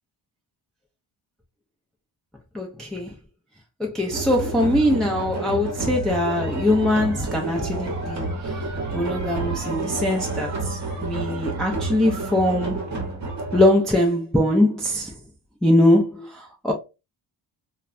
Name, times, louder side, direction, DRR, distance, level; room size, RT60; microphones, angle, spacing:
voice 1, 2.5-3.2 3.8-8.6 8.9-12.8 13.5-15.1 15.6-16.7, left 1 dB, ahead, 0.5 m, -22 dB
sound 1, 4.1-13.7, right 3 dB, 35° right, 0.8 m, -29 dB
3.0 x 2.2 x 2.4 m
cardioid pair, 85°, 46 cm